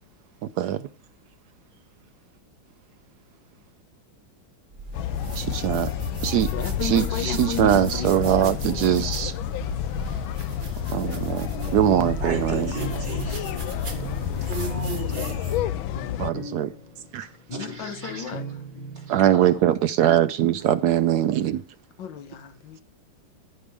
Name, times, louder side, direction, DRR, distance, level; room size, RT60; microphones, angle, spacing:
voice 1, 0.6-0.9 5.4-5.9 6.2-6.5 6.8-9.3 10.9-12.8 16.2-16.7 17.1-17.3 19.1-21.6, right 11 dB, 75° right, 0.9 m, -22 dB
sound 1, 4.7-15.7, right 1 dB, 30° right, 1.2 m, -36 dB
sound 2, 4.9-16.3, left 12 dB, 85° left, 1.4 m, -30 dB
voice 2, 6.5-8.1 8.4-8.5 17.6-18.4 22.0-22.8, left 7 dB, 70° left, 1.7 m, -33 dB
sound 3, 11.3-19.6, right 2 dB, 30° left, 0.9 m, -39 dB
voice 3, 12.2-13.7 14.5-15.5 17.5-18.3 19.1-19.5, right 3 dB, 90° right, 4.6 m, -35 dB
14.5 x 5.1 x 3.3 m
omnidirectional pair, 2.2 m